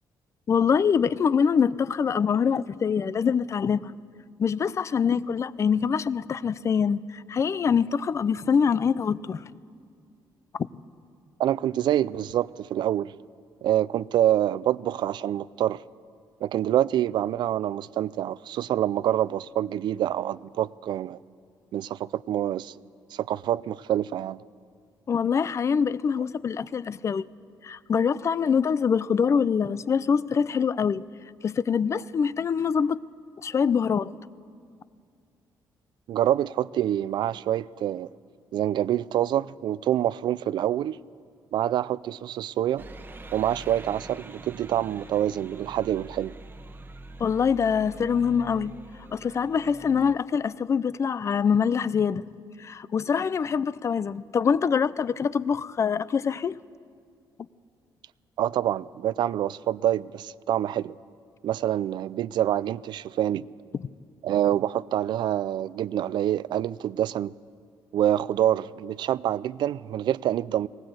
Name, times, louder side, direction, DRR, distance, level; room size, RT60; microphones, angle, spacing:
voice 1, 0.5-3.9 4.4-9.4 25.1-27.3 27.6-31.0 31.4-33.0 33.4-34.1 47.2-48.7 49.1-52.2 52.6-56.6 63.8-63.9, left 6 dB, 40° left, 0.5 m, -24 dB
voice 2, 11.4-13.1 13.6-15.8 16.4-21.2 21.7-22.7 23.1-24.4 36.1-38.1 38.5-41.0 41.5-42.9 43.3-46.3 58.4-60.9 61.4-63.5 64.2-67.4 67.9-70.7, right 11 dB, 70° right, 0.4 m, -26 dB
sound 1, 42.8-50.2, right 2 dB, 25° right, 1.0 m, -44 dB
19.0 x 19.0 x 8.0 m
cardioid pair, 120°, 8 cm